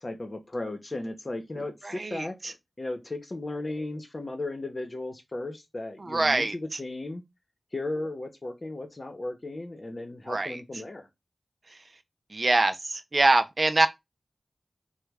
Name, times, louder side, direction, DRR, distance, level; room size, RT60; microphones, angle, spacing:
voice 1, 0.0-7.2 7.7-11.1, left 2 dB, 45° left, 0.8 m, -35 dB
voice 2, 1.8-2.5 6.0-6.5 10.3-10.6 12.3-13.9, right 2 dB, 55° right, 0.4 m, -24 dB
3.0 x 2.2 x 3.4 m
cardioid pair, 50°, 0 cm